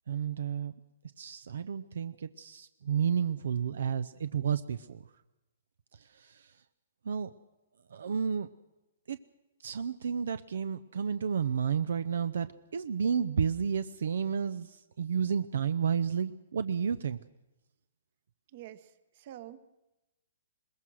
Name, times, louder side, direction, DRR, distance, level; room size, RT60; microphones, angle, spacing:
voice 1, 0.1-0.7 1.2-5.0 5.9-6.6 7.0-7.3 7.9-8.5 9.1-9.2 9.6-17.2, right 7 dB, 75° right, 13 dB, 0.6 m, -31 dB
voice 2, 18.5-19.6, right 13 dB, 45° right, 14 dB, 1.1 m, -47 dB
21.5 x 20.5 x 6.3 m, 1.0 s
hypercardioid pair, 160°, 0 cm